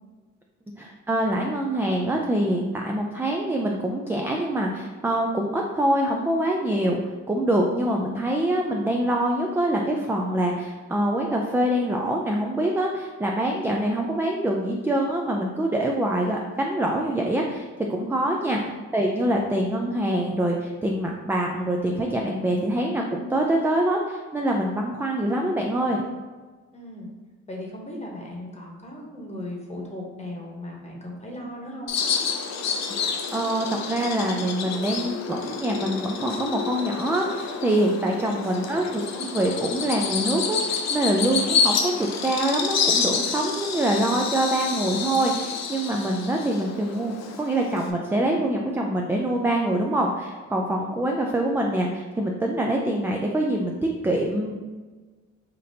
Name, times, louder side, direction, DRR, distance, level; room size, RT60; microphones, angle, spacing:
voice 1, 0.8-7.0 7.3-26.0 33.0-53.8 54.0-54.6, right 1 dB, 10° right, 0 dB, 0.3 m, -25 dB
voice 2, 26.7-27.1 27.5-31.9, left 1 dB, 20° left, -1 dB, 1.0 m, -37 dB
Bird vocalization bird call bird song, 31.9-47.9, left 6 dB, 60° left, 0.5 m, -29 dB
5.1 x 2.7 x 2.7 m, 1.3 s
cardioid pair, 90°, 30 cm